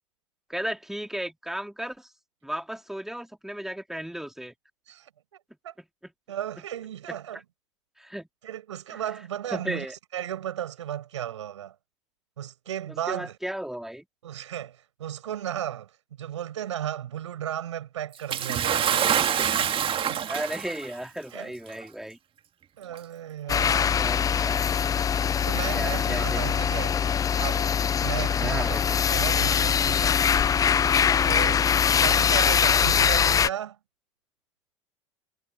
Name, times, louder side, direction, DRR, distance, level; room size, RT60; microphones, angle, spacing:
voice 1, 0.5-2.1 2.4-4.5 5.8-6.1 8.0-8.3 9.5-9.9 13.1-14.0 20.2-22.2 23.9-24.6 25.7-27.0 28.4-29.0, right 1 dB, ahead, 3.3 m, -35 dB
voice 2, 6.3-7.4 8.4-11.8 12.4-13.4 14.2-19.1 19.5-19.8 20.1-20.2 21.3-21.5 22.8-24.0 25.4-27.0 27.3-27.7 28.0-28.8 29.1-30.2 31.3-33.8, right 11 dB, 80° right, 6.2 m, -35 dB
Bathtub (filling or washing) / Splash splatter, 18.3-20.9 21.8-21.9 22.9-23.0, right 9 dB, 35° right, 2.1 m, -25 dB
sound 1, 23.5-33.5, left 7 dB, 25° left, 0.4 m, -23 dB
hypercardioid pair, 80°, 15 cm